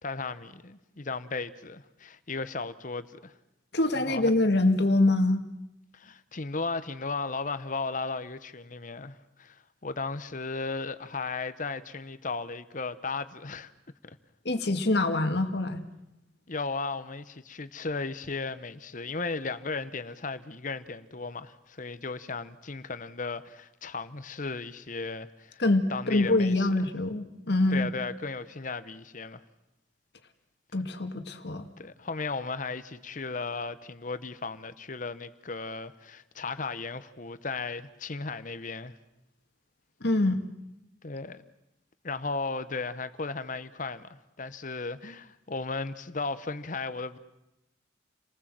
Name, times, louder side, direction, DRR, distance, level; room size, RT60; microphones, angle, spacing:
voice 1, 0.0-3.3 3.9-4.3 5.9-13.7 16.5-25.6 25.9-26.9 27.7-29.4 31.8-38.9 41.0-41.4 42.0-47.2, left 4 dB, 45° left, 1.0 m, -35 dB
voice 2, 3.7-5.4 14.5-15.8 25.6-27.9 30.7-31.7 40.0-40.4, left 2 dB, 60° left, 2.0 m, -25 dB
29.5 x 20.0 x 7.6 m
head